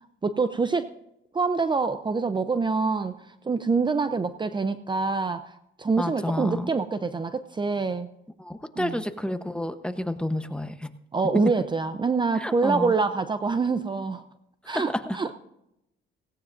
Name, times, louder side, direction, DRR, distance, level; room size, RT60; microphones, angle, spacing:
voice 1, 0.2-0.9 1.3-8.1 8.8-9.0 11.1-14.2 14.7-15.4, right 4 dB, 25° right, 10 dB, 0.6 m, -26 dB
voice 2, 6.0-6.7 8.4-10.9 12.4-12.9 14.7-15.2, left 1 dB, 5° left, 8 dB, 1.0 m, -30 dB
17.5 x 17.0 x 2.6 m, 0.84 s
cardioid pair, 90°, 20 cm